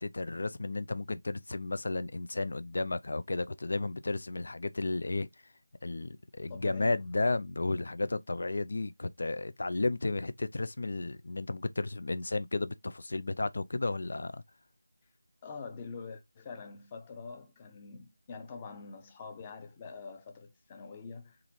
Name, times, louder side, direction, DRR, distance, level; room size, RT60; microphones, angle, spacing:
voice 1, 0.0-5.3 5.8-14.4, left 2 dB, 60° left, 0.5 m, -33 dB
voice 2, 6.5-7.3 15.4-21.4, left 4 dB, 20° left, 0.8 m, -45 dB
3.8 x 3.2 x 2.8 m
figure-of-eight pair, 170°, 0 cm